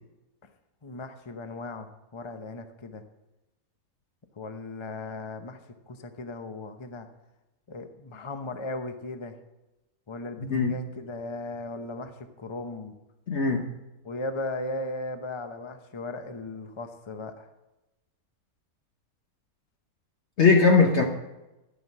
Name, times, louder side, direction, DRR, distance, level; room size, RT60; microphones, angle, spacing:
voice 1, 0.8-3.0 4.4-5.6 5.9-7.1 7.7-9.4 10.1-12.9 14.0-17.5, left 2 dB, 25° left, 7 dB, 0.6 m, -37 dB
voice 2, 10.4-10.8 13.3-13.7 20.4-21.0, left 4 dB, 50° left, 2 dB, 1.2 m, -20 dB
12.5 x 6.2 x 7.3 m, 1.0 s
omnidirectional pair, 1.6 m